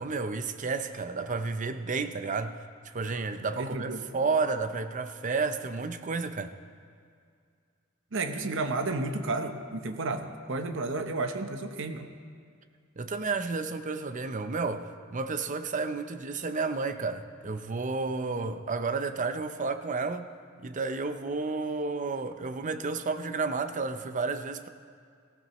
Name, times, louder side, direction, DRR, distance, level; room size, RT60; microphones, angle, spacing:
voice 1, 0.0-2.6 2.9-6.5 13.0-20.3 20.6-24.7, right 4 dB, 40° right, 9 dB, 0.6 m, -31 dB
voice 2, 3.5-4.0 8.1-12.1, right 3 dB, 65° right, 7 dB, 0.9 m, -32 dB
18.5 x 15.5 x 3.1 m, 2.2 s
head